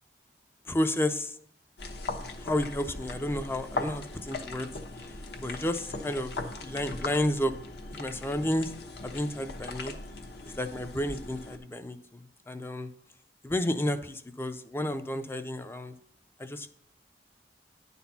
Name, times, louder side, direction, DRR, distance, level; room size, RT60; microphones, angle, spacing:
voice 1, 0.7-1.4 2.4-4.7 5.0-5.1 5.4-6.3 6.6-7.5 8.0-8.7 9.0-9.9 10.5-12.9 13.4-15.9 16.4-16.7, left 1 dB, 15° left, 9 dB, 0.4 m, -31 dB
sound 1, 1.8-11.6, left 2 dB, 65° left, 1.0 m, -39 dB
10.0 x 4.1 x 5.7 m, 0.67 s
head